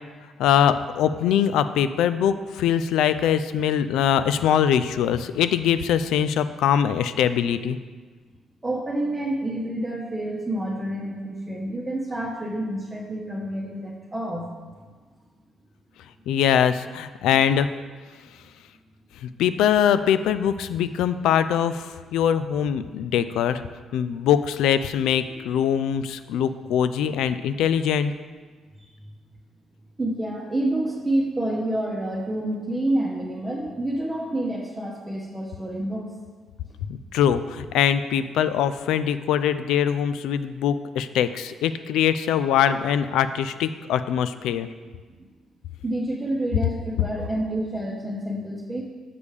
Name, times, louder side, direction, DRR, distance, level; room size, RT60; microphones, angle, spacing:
voice 1, 0.4-7.8 16.3-17.7 19.2-23.6 23.9-28.1 36.9-44.7, left 9 dB, 85° left, 12 dB, 0.3 m, -22 dB
voice 2, 8.6-14.5 28.8-28.9 30.0-36.1 45.8-48.8, right 1 dB, 20° right, -3 dB, 0.9 m, -28 dB
6.8 x 5.2 x 4.8 m, 1.4 s
cardioid pair, 90°, 0 cm